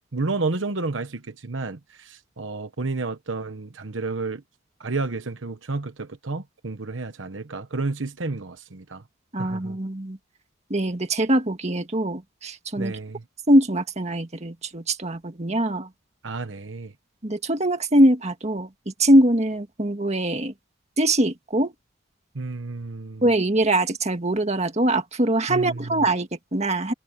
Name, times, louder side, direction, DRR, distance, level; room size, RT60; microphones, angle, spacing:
voice 1, 0.1-4.4 4.8-9.0 9.4-9.8 12.8-13.2 16.2-16.9 22.3-23.2 25.5-26.1, right 3 dB, 75° right, 1.1 m, -31 dB
voice 2, 9.3-10.2 10.7-12.9 13.5-15.9 17.2-20.5 21.0-21.7 23.2-26.9, right 1 dB, 35° right, 1.9 m, -22 dB
head